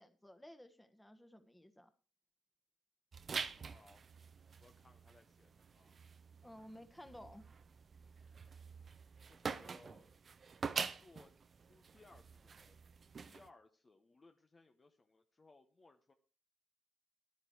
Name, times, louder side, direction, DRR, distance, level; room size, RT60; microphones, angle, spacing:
voice 1, 0.0-1.9 6.4-7.4, left 1 dB, 10° left, 10 dB, 1.4 m, -55 dB
sound 1, 3.1-13.5, right 5 dB, 40° right, 0.8 m, -46 dB
voice 2, 3.5-4.0 4.6-6.0 9.3-10.2 10.9-11.3 11.6-12.8 13.2-16.1, left 3 dB, 30° left, 6 dB, 1.0 m, -64 dB
11.0 x 9.8 x 4.8 m, 0.36 s
cardioid pair, 90°, 0 cm